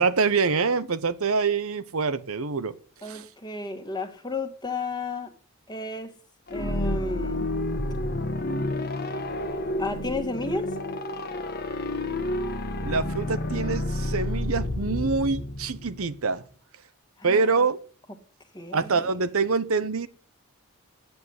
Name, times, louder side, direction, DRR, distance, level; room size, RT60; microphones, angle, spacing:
voice 1, 0.0-2.7 3.0-3.3 12.8-16.4 17.2-17.8 18.7-20.1, right 4 dB, 70° right, 0.9 m, -25 dB
voice 2, 3.0-5.3 5.7-6.1 6.5-7.5 9.8-10.7 17.2-17.5 18.5-19.1, left 3 dB, 20° left, 1.7 m, -33 dB
sound 1, 6.5-16.2, left 1 dB, 45° left, 1.2 m, -30 dB
9.5 x 8.1 x 9.6 m
head